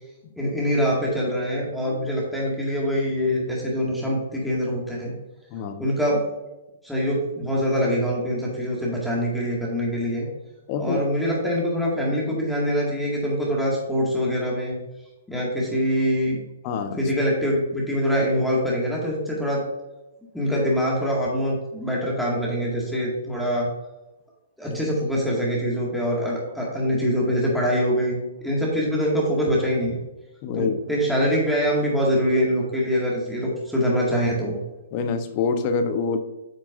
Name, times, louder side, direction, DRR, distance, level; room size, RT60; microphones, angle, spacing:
voice 1, 0.4-5.1 5.8-6.2 6.8-10.3 10.8-14.8 15.3-16.4 17.0-19.6 20.3-23.7 24.6-30.0 30.5-34.6, equal, ahead, -5 dB, 2.0 m, -24 dB
voice 2, 5.5-6.0 10.7-11.0 16.6-17.1 24.7-24.8 30.4-30.8 34.9-36.2, left 5 dB, 40° left, 7 dB, 0.9 m, -26 dB
8.2 x 6.1 x 2.6 m, 1.0 s
hypercardioid pair, 130°, 0 cm